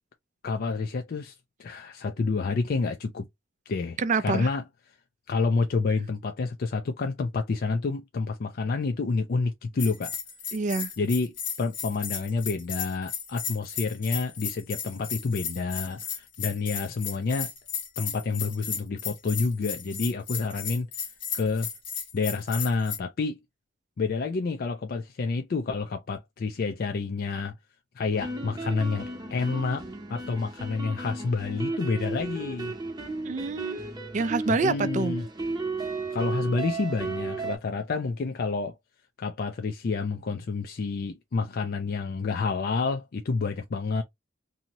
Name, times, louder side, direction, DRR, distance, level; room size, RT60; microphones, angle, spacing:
voice 1, 0.4-1.3 1.6-3.3 3.7-4.6 5.3-10.1 11.0-17.5 18.0-20.9 21.3-21.7 22.1-23.4 24.0-27.5 28.0-29.8 30.1-32.7 34.6-35.2 36.1-38.7 39.2-44.0, left 4 dB, 50° left, 0.4 m, -29 dB
voice 2, 4.0-4.5 10.5-10.9 33.2-33.8 34.1-35.2, right 4 dB, 40° right, 0.4 m, -26 dB
Bell, 9.8-23.0, left 7 dB, 70° left, 1.2 m, -35 dB
sound 1, 28.1-37.6, right 3 dB, 20° right, 0.8 m, -34 dB
2.7 x 2.7 x 2.9 m
head